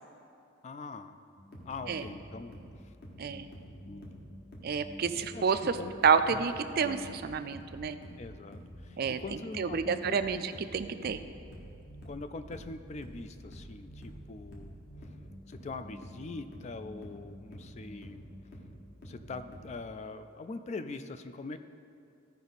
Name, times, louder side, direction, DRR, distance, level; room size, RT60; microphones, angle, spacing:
voice 1, 0.6-1.2 1.6-2.6 3.8-4.1 5.3-6.0 6.3-6.5 8.2-10.5 12.0-14.8 15.5-18.3 19.0-21.6, left 3 dB, 35° left, 10 dB, 0.3 m, -42 dB
sound 1, 1.4-19.7, equal, 50° left, 1.3 m, -48 dB
voice 2, 3.2-3.5 4.6-5.8 6.0-8.0 9.0-11.2, right 6 dB, 45° right, 10 dB, 0.4 m, -29 dB
14.5 x 5.1 x 4.0 m, 2.7 s
head